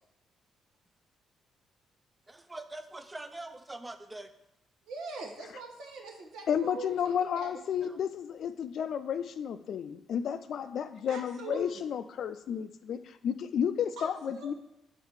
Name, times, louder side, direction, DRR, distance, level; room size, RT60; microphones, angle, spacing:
voice 1, 2.3-4.3 7.8-8.0, right 2 dB, 15° right, 9 dB, 0.5 m, -43 dB
voice 2, 4.8-7.6 11.1-11.8 14.0-14.5, right 3 dB, 85° right, 1 dB, 1.1 m, -43 dB
voice 3, 6.5-14.5, left 8 dB, 65° left, 12 dB, 0.4 m, -32 dB
6.5 x 4.0 x 4.8 m, 0.86 s
cardioid pair, 90°, 0 cm